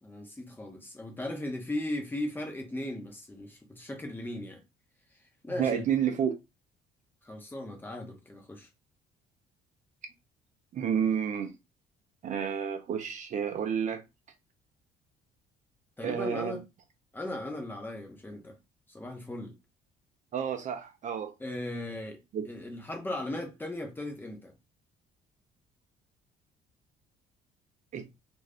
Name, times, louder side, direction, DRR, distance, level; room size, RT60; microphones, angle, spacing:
voice 1, 0.0-4.6 5.4-5.9 7.2-8.7 16.0-16.6 17.1-18.6 18.9-19.5 21.4-24.5, left 1 dB, 10° left, 0.8 m, -37 dB
voice 2, 5.6-6.4 10.7-11.5 12.2-14.0 16.0-16.6 20.3-21.3 22.3-22.5 27.9-28.0, right 8 dB, 45° right, 0.5 m, -30 dB
2.5 x 2.2 x 3.4 m
cardioid pair, 110°, 17 cm